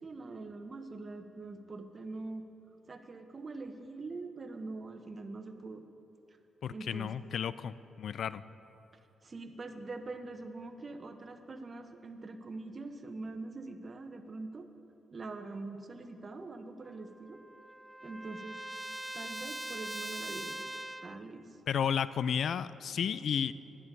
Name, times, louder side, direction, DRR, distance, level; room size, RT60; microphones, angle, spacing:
voice 1, 0.0-2.4 2.9-5.8 6.7-7.1 9.2-14.7 15.1-17.4 18.0-18.6 19.1-20.6 21.0-21.5, right 3 dB, 45° right, 7 dB, 1.1 m, -43 dB
voice 2, 6.6-8.4 21.7-23.5, left 8 dB, 65° left, 16 dB, 0.3 m, -32 dB
Trumpet, 16.8-21.2, right 1 dB, 10° right, 0.3 m, -42 dB
11.5 x 10.5 x 5.4 m, 2.9 s
supercardioid pair, 50°, 0 cm